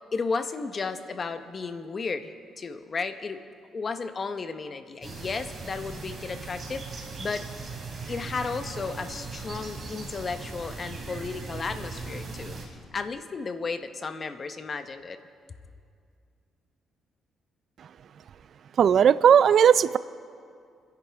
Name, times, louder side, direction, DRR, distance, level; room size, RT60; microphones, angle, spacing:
voice 1, 0.1-3.4 3.7-6.8 7.2-7.4 8.1-12.6 12.9-15.2, left 4 dB, 40° left, 9 dB, 1.0 m, -33 dB
sound 1, 5.0-12.7, right 3 dB, 40° right, 3.6 m, -39 dB
voice 2, 18.8-20.0, right 8 dB, 60° right, 17 dB, 0.4 m, -17 dB
29.0 x 11.0 x 3.5 m, 2.3 s
cardioid pair, 90°, 0 cm